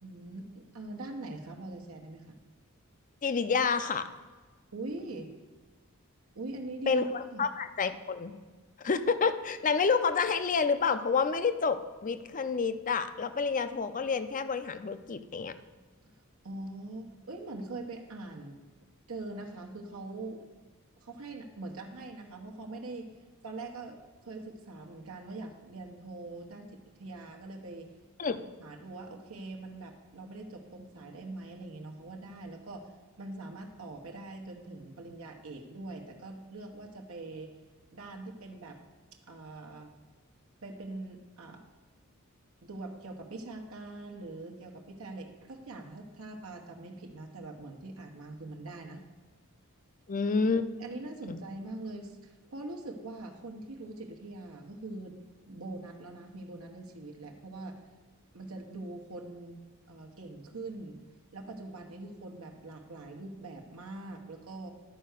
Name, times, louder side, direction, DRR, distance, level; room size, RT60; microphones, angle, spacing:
voice 1, 0.0-2.4 4.7-5.3 6.3-7.4 16.0-16.1 16.4-18.6 19.1-20.4 21.0-23.1 23.4-24.0 24.2-27.9 28.6-32.9 33.2-37.5 37.9-38.8 39.3-39.9 40.6-41.6 42.6-49.0 50.8-55.2 55.5-57.8 58.3-59.6 59.9-61.0 61.3-64.7, right 2 dB, 80° right, 2 dB, 1.1 m, -43 dB
voice 2, 3.2-4.1 6.9-8.3 8.8-15.5 28.2-28.4 50.1-50.7 51.3-51.4, left 5 dB, 40° left, 11 dB, 0.5 m, -29 dB
11.5 x 4.6 x 6.5 m, 1.4 s
head